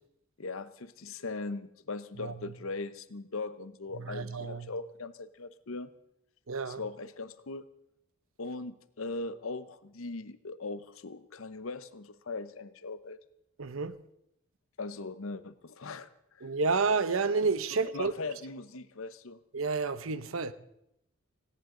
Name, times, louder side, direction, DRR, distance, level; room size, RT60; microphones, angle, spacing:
voice 1, 0.4-5.9 6.7-7.7 8.4-13.2 14.8-16.5 17.8-19.4, left 3 dB, 80° left, 0.9 m, -40 dB
voice 2, 4.0-4.7 6.5-6.8 13.6-14.0 16.4-18.1 19.5-20.5, right 4 dB, 80° right, 0.8 m, -30 dB
18.5 x 17.0 x 3.9 m
head